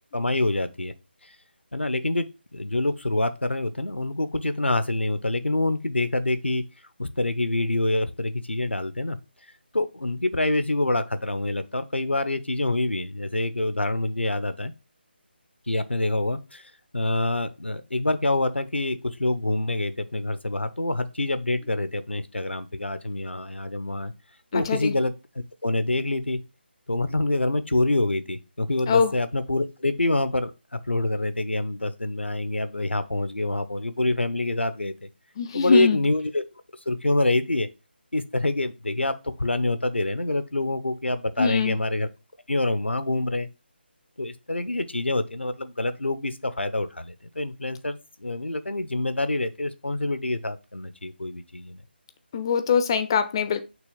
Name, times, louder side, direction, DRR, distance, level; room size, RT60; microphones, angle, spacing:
voice 1, 0.1-0.9 1.2-1.3 1.7-6.6 7.0-9.2 9.7-14.7 15.7-24.1 24.5-25.1 25.6-26.4 26.9-30.5 30.9-35.1 35.5-36.4 36.9-37.7 38.1-42.1 42.5-43.5 44.2-51.8, left 2 dB, 85° left, 0.8 m, -26 dB
voice 2, 24.5-24.9 28.9-29.1 35.4-36.0 41.4-41.8 52.3-53.6, left 6 dB, 25° left, 0.5 m, -22 dB
6.1 x 3.1 x 5.3 m
figure-of-eight pair, 155°, 6 cm